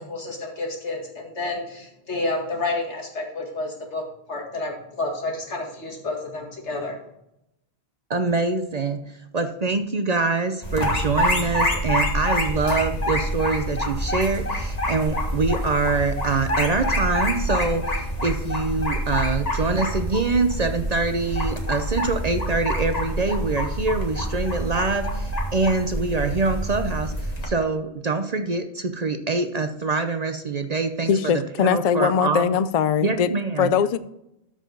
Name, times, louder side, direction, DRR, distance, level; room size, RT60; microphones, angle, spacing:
voice 1, 0.1-7.0, left 2 dB, 85° left, 0 dB, 2.3 m, -30 dB
voice 2, 8.1-32.5 33.0-33.8, right 3 dB, 45° right, 8 dB, 0.6 m, -25 dB
sound 1, 10.6-27.5, equal, 35° left, 1.7 m, -26 dB
voice 3, 31.1-33.3 33.6-34.0, left 7 dB, 60° left, 14 dB, 0.4 m, -21 dB
13.0 x 4.9 x 3.9 m, 0.82 s
omnidirectional pair, 1.1 m